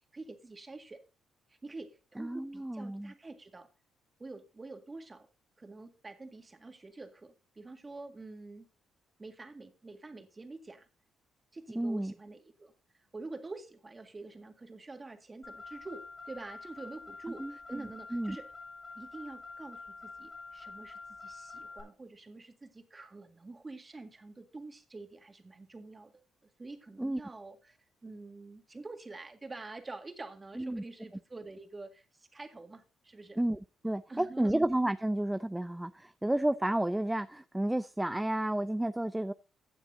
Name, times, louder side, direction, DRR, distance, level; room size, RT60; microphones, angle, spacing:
voice 1, 0.1-1.0 1.5-3.7 4.2-5.3 5.6-8.7 9.2-10.9 11.5-18.5 19.0-26.3 26.6-33.4 34.1-34.5, right 3 dB, 25° right, 6 dB, 1.9 m, -47 dB
voice 2, 2.2-3.1 11.8-12.1 17.4-17.8 18.1-18.4 27.0-27.2 30.6-30.8 33.4-39.3, right 1 dB, 10° right, 12 dB, 0.4 m, -31 dB
Car, 15.4-21.8, left 4 dB, 45° left, 5.4 m, -47 dB
15.5 x 8.9 x 2.7 m, 0.31 s
cardioid pair, 90°, 0 cm